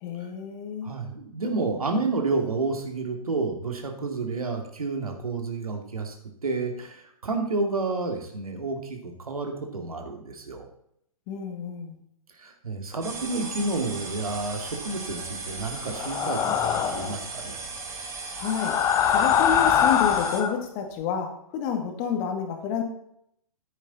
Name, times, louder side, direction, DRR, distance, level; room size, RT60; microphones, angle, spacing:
voice 1, 0.0-0.9 11.3-12.0 18.4-18.8 19.1-22.8, left 7 dB, 30° left, 5 dB, 1.9 m, -29 dB
voice 2, 0.8-6.1 6.4-10.7 12.4-17.6, right 3 dB, 75° right, 4 dB, 2.5 m, -30 dB
sound 1, 13.0-20.4, right 4 dB, 15° right, 2.0 m, -37 dB
sound 2, 16.0-17.1 18.4-20.6, left 9 dB, 15° left, 0.6 m, -23 dB
10.5 x 9.5 x 4.1 m, 0.73 s
figure-of-eight pair, 125°, 19 cm